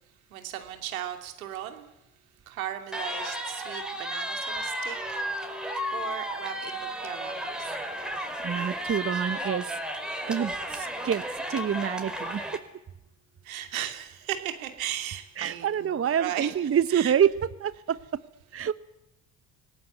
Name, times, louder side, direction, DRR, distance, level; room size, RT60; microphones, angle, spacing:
voice 1, 0.3-1.9 2.5-5.0 5.3-5.6 5.9-7.8 13.4-17.1, right 11 dB, 90° right, 6 dB, 2.8 m, -37 dB
sound 1, 2.9-12.6, equal, ahead, 5.0 m, -33 dB
voice 2, 8.4-9.6 10.0-11.2 11.5-12.4 15.4-17.3 17.6-18.0 18.5-18.7, right 8 dB, 35° right, 15 dB, 1.1 m, -27 dB
25.5 x 18.0 x 9.3 m, 0.90 s
hypercardioid pair, 60°, 40 cm